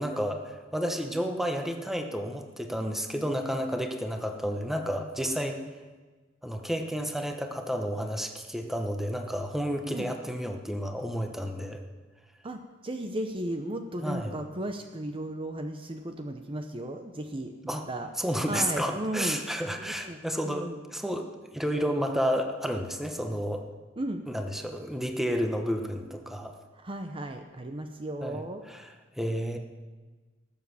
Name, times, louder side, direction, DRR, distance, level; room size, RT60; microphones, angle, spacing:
voice 1, 0.0-5.6 6.4-11.8 14.0-14.3 17.7-17.8 18.2-23.6 24.3-26.5 28.2-28.9 29.2-29.6, equal, ahead, 4 dB, 1.1 m, -31 dB
voice 2, 12.4-18.1 18.5-19.4 19.8-20.2 20.5-20.8 24.0-24.2 26.7-28.6, right 1 dB, 30° right, 5 dB, 0.8 m, -35 dB
19.0 x 7.4 x 7.0 m, 1.3 s
head